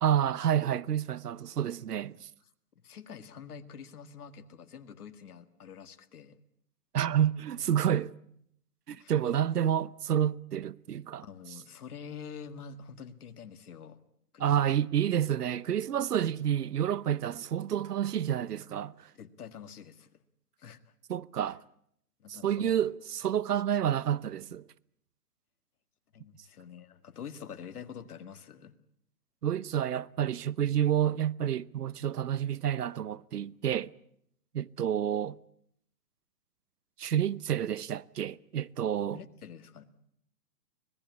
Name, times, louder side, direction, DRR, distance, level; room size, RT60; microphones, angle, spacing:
voice 1, 0.0-2.3 6.9-8.1 8.9-11.2 14.4-18.9 21.1-21.6 22.3-24.6 29.4-33.9 34.5-35.4 37.0-39.2, right 10 dB, 85° right, 0.9 m, -29 dB
voice 2, 2.8-6.4 9.0-9.1 11.2-14.0 14.3-14.7 19.2-20.1 20.6-20.9 21.4-21.5 22.2-22.8 23.3-23.6 26.1-28.7 39.1-39.8, left 7 dB, 75° left, 1.9 m, -46 dB
25.0 x 18.5 x 8.3 m
hypercardioid pair, 150°, 46 cm